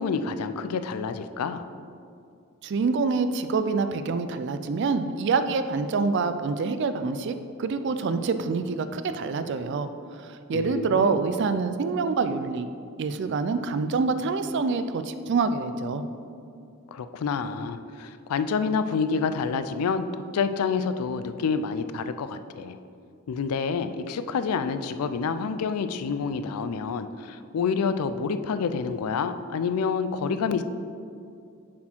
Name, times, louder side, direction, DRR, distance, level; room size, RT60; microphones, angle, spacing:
voice 1, 0.0-1.7 10.5-11.2 16.9-20.1 20.3-22.8 23.3-30.6, left 5 dB, 90° left, 11 dB, 0.4 m, -28 dB
voice 2, 2.6-9.9 10.5-12.7 13.0-16.0, right 4 dB, 55° right, 10 dB, 0.3 m, -26 dB
7.3 x 4.3 x 4.4 m, 2.4 s
head